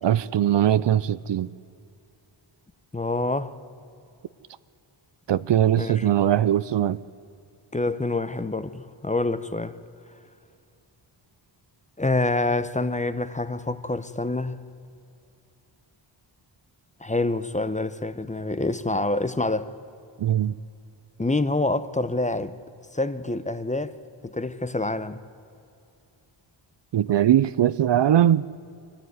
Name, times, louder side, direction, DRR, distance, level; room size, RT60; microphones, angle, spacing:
voice 1, 0.0-1.5 5.3-7.0 20.2-20.5 26.9-28.5, right 11 dB, 60° right, 0.6 m, -20 dB
voice 2, 2.9-3.5 5.8-6.1 7.7-9.8 12.0-14.6 17.0-19.7 21.2-22.5 22.9-24.0 24.2-25.2, left 2 dB, 15° left, 0.8 m, -26 dB
23.5 x 14.5 x 9.5 m
wide cardioid pair, 90°, 48 cm